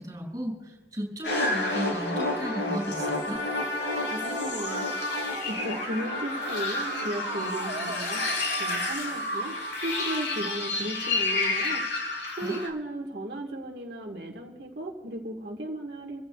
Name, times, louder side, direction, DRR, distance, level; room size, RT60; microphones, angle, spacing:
voice 1, 0.0-3.4 12.4-12.6, equal, 20° right, 0 dB, 6.0 m, -34 dB
sound 1, 1.2-12.7, left 2 dB, 80° left, 4.1 m, -30 dB
Musical instrument, 3.3-8.9, right 3 dB, 40° right, 2.3 m, -39 dB
voice 2, 4.1-4.9 5.4-8.2 8.6-11.8 12.4-16.2, right 1 dB, 65° right, -1 dB, 1.5 m, -35 dB
27.0 x 16.0 x 2.3 m, 1.2 s
head